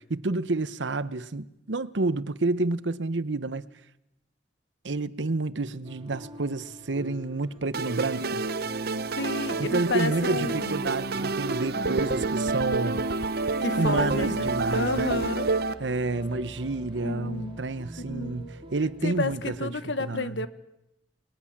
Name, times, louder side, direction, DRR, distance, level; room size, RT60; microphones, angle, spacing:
voice 1, 0.1-3.6 4.8-8.4 9.6-13.0 13.8-15.3 15.8-19.7 20.0-20.5, right 3 dB, 85° right, 0.9 m, -29 dB
sound 1, 5.8-19.6, equal, 30° right, 2.9 m, -43 dB
sound 2, 7.7-15.7, right 3 dB, 60° right, 0.9 m, -29 dB
voice 2, 9.2-10.9 13.6-15.5 17.0-17.6 18.0-18.5 19.0-20.5, left 2 dB, 85° left, 1.5 m, -31 dB
29.5 x 21.0 x 7.3 m
head